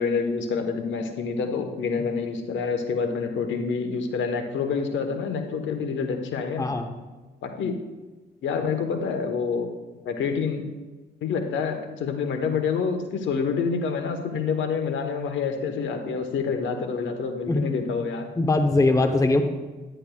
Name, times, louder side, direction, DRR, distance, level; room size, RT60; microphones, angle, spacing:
voice 1, 0.0-6.7 7.4-7.8 8.4-9.7 10.0-10.6 11.2-18.3, left 5 dB, 70° left, 6 dB, 1.0 m, -27 dB
voice 2, 6.6-6.9 17.5-17.6 18.4-19.4, left 2 dB, 15° left, 6 dB, 0.7 m, -21 dB
10.0 x 10.0 x 2.3 m, 1.2 s
cardioid pair, 90°, 20 cm